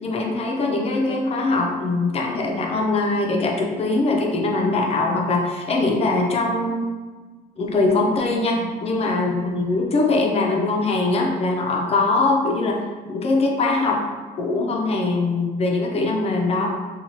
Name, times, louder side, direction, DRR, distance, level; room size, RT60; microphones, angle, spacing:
voice 1, 0.0-6.9 7.6-12.8 13.1-14.0 14.4-16.7, left 3 dB, 35° left, 0 dB, 0.5 m, -22 dB
2.9 x 2.3 x 2.7 m, 1.4 s
cardioid pair, 110°, 17 cm